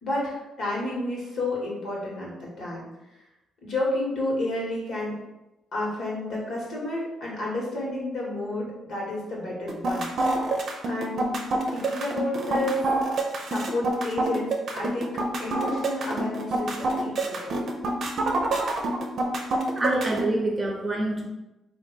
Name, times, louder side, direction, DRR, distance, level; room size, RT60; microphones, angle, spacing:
voice 1, 0.0-2.9 3.6-5.1 5.7-10.1 10.9-12.8 13.5-17.6, left 1 dB, 65° left, -4 dB, 1.4 m, -31 dB
sound 1, 9.7-20.3, right 2 dB, 60° right, 0.6 m, -26 dB
voice 2, 19.8-21.3, right 2 dB, 25° right, 0 dB, 0.8 m, -26 dB
3.4 x 2.5 x 4.1 m, 0.98 s
cardioid pair, 90°, 0 cm